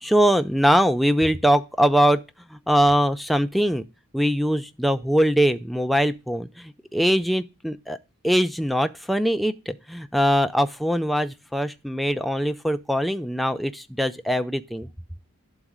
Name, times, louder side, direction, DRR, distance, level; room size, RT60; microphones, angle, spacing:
voice 1, 0.0-2.2 2.5-3.8 4.1-8.0 8.2-14.9, equal, ahead, 0.3 m, -22 dB
11.0 x 4.0 x 3.6 m
head